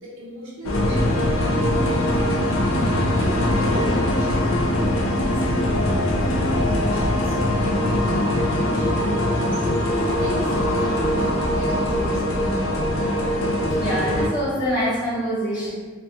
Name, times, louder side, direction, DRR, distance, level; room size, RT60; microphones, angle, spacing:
voice 1, 0.0-1.0 1.5-2.5 3.2-4.6 4.9-6.0 6.4-9.7 10.2-12.7, equal, 75° right, -5 dB, 0.7 m, -35 dB
sound 1, 0.6-14.3, left 1 dB, 80° left, 0.4 m, -22 dB
voice 2, 13.7-15.7, equal, 20° left, -11 dB, 1.0 m, -25 dB
2.4 x 2.3 x 2.8 m, 1.4 s
head